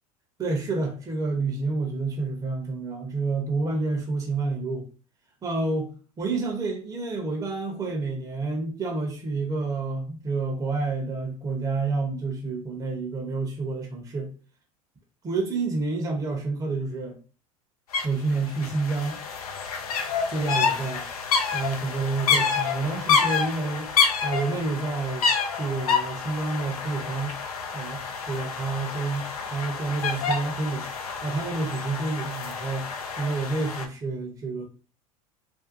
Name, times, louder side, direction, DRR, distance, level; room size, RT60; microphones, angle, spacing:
voice 1, 0.4-4.9 5.4-5.9 6.2-14.3 15.2-17.2 18.0-19.2 20.3-21.1 21.5-27.4 27.7-30.9 31.2-34.6, right 3 dB, 20° right, 0.6 m, -29 dB
sound 1, 17.9-18.0 18.3-33.8, left 6 dB, 85° left, 0.5 m, -28 dB
2.5 x 2.2 x 2.6 m
hypercardioid pair, 85°, 19 cm